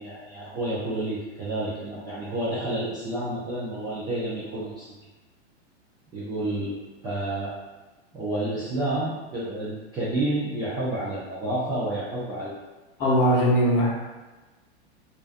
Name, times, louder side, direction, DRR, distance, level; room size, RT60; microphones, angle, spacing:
voice 1, 0.0-4.9 6.1-7.5 8.1-12.5 13.0-13.2, right 1 dB, 15° right, -10 dB, 0.3 m, -30 dB
voice 2, 13.0-13.9, equal, 40° left, -3 dB, 0.7 m, -20 dB
2.4 x 2.2 x 2.5 m, 1.2 s
hypercardioid pair, 120°, 34 cm